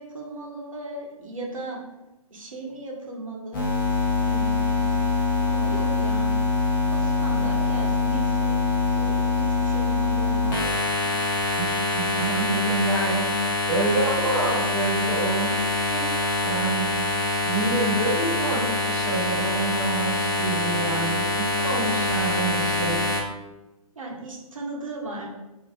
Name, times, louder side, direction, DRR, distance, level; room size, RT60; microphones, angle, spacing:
voice 1, 0.0-1.8 2.3-3.7 4.3-4.9 5.4-6.3 6.9-11.1 24.0-25.3, right 2 dB, 60° right, -1 dB, 0.8 m, -37 dB
sound 1, 3.5-23.2, left 2 dB, 35° left, 0.8 m, -24 dB
voice 2, 11.9-16.2 16.4-16.9 17.4-23.0, right 2 dB, ahead, -11 dB, 0.5 m, -27 dB
3.1 x 2.5 x 2.6 m, 0.99 s
figure-of-eight pair, 130°, 19 cm